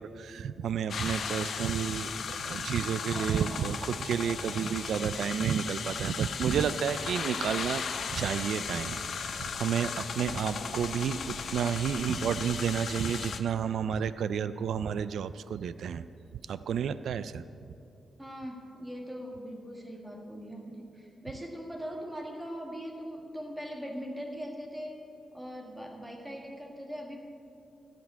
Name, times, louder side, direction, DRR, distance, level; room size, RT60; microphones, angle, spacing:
voice 1, 0.0-7.8 8.1-16.1 16.5-17.4, right 7 dB, 75° right, 14 dB, 0.3 m, -31 dB
sound 1, 0.9-13.4, left 6 dB, 60° left, 0.7 m, -36 dB
voice 2, 18.2-25.0 25.3-27.2, equal, 5° right, 0 dB, 1.5 m, -40 dB
14.5 x 5.1 x 9.3 m, 2.6 s
wide cardioid pair, 150°, 0 cm